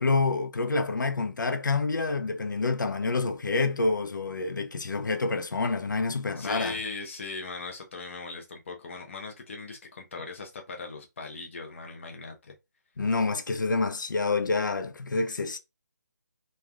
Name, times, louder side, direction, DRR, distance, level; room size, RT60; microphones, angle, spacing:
voice 1, 0.0-6.8 13.0-15.6, left 3 dB, 90° left, 0.5 m, -27 dB
voice 2, 6.4-12.5, left 3 dB, 40° left, 0.7 m, -39 dB
3.2 x 2.5 x 2.2 m
hypercardioid pair, 165°, 10 cm